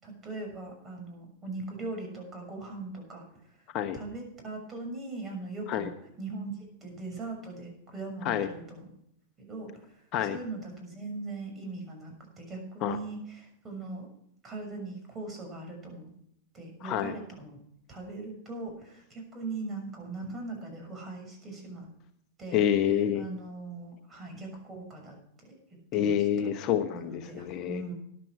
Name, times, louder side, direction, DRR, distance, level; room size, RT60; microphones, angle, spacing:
voice 1, 0.0-3.6 3.9-5.9 6.2-8.9 9.4-14.1 14.4-16.1 16.5-17.6 17.9-21.9 22.4-22.6 23.1-25.2 25.5-25.6 25.9-26.2 26.9-27.9, right 3 dB, 20° right, 2 dB, 6.4 m, -40 dB
voice 2, 16.8-17.1 22.5-23.2 25.9-27.8, left 9 dB, 45° left, 8 dB, 1.0 m, -27 dB
13.5 x 11.0 x 4.8 m, 0.71 s
hypercardioid pair, 110°, 0 cm